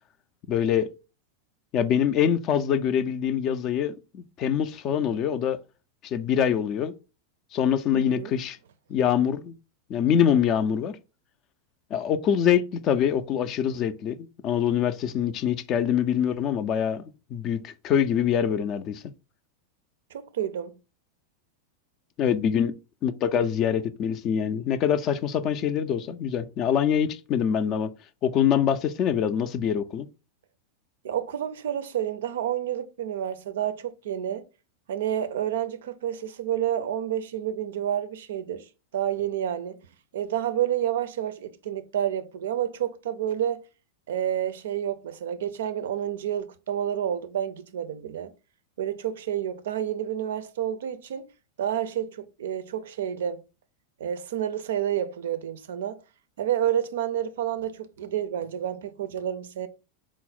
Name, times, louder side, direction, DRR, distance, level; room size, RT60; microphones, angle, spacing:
voice 1, 0.5-0.9 1.7-5.6 6.0-6.9 7.5-8.6 8.9-9.5 9.9-11.0 11.9-17.0 17.3-19.0 22.2-22.7 23.0-27.9 28.2-30.1, left 8 dB, 35° left, 0.3 m, -24 dB
voice 2, 7.9-8.3 20.1-20.8 31.0-34.4 34.9-39.8 40.1-43.6 44.1-48.3 48.8-51.2 51.6-53.4 54.0-56.0 56.4-59.7, right 10 dB, 60° right, 0.4 m, -29 dB
4.0 x 2.0 x 3.9 m
figure-of-eight pair, 90°, 0 cm